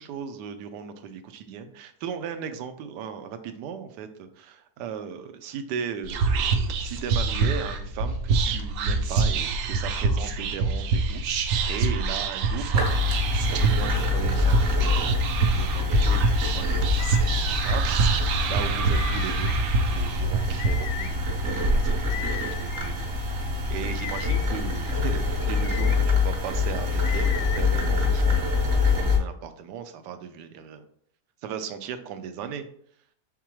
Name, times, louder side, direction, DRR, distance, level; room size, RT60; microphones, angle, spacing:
voice 1, 0.0-13.1 13.5-15.0 15.4-19.5 19.9-30.8 31.4-32.6, right 7 dB, 90° right, 9 dB, 1.2 m, -37 dB
Whispering, 6.0-20.7, right 4 dB, 70° right, 1.0 m, -25 dB
sound 1, 12.7-29.2, left 3 dB, 45° right, 1.2 m, -25 dB
sound 2, 17.0-17.8 18.9-19.5 20.6-21.1 22.1-22.9 23.8-24.4 25.4-26.0 27.0-27.6, left 9 dB, 70° left, 0.8 m, -37 dB
4.8 x 3.6 x 3.0 m, 0.63 s
omnidirectional pair, 1.8 m